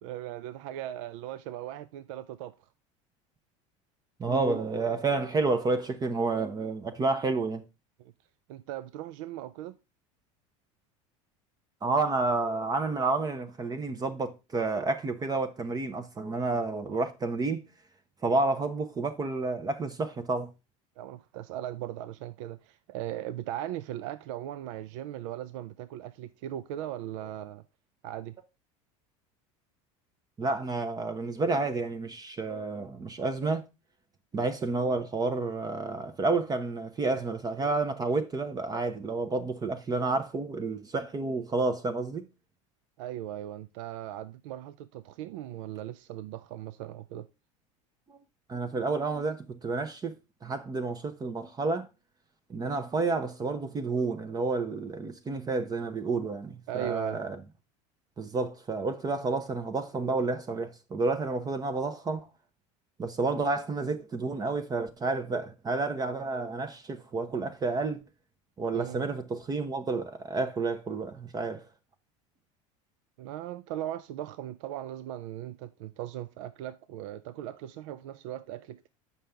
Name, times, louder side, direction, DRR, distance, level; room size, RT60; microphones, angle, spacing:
voice 1, 0.0-2.7 8.0-8.1 8.5-9.8 21.0-27.6 28.0-28.3 43.0-47.3 56.7-57.2 68.7-69.0 73.2-78.9, right 12 dB, 75° right, 0.5 m, -38 dB
voice 2, 4.2-7.6 11.8-17.6 18.2-20.5 30.4-33.6 34.3-42.2 48.1-48.2 48.5-50.1 50.4-51.9 52.5-57.4 58.2-62.2 63.0-68.0 68.6-71.6, right 3 dB, 25° right, 0.8 m, -30 dB
7.5 x 5.6 x 3.4 m
supercardioid pair, 105°, 16 cm